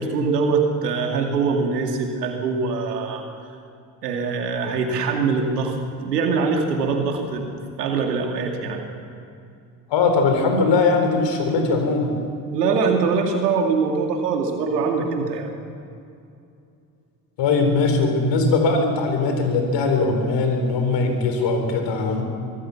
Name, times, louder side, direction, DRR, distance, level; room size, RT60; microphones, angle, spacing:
voice 1, 0.0-3.2 4.0-8.8 12.5-15.5, right 4 dB, 90° right, 3 dB, 2.4 m, -23 dB
voice 2, 9.9-12.1 17.4-22.2, left 3 dB, 65° left, 4 dB, 4.3 m, -20 dB
24.0 x 15.0 x 7.2 m, 2.5 s
hypercardioid pair, 55°, 46 cm